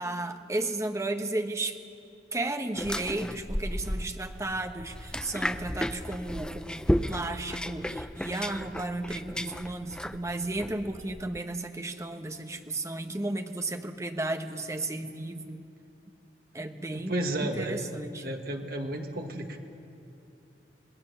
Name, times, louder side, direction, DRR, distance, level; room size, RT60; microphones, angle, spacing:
voice 1, 0.0-1.8 2.3-15.6 16.5-18.4, right 2 dB, 15° right, 6 dB, 1.1 m, -34 dB
sound 1, 2.8-11.4, equal, 5° left, 0.5 m, -34 dB
voice 2, 16.9-17.8 18.2-19.6, right 1 dB, 60° right, 3 dB, 1.9 m, -32 dB
27.0 x 19.0 x 6.9 m, 2.7 s
head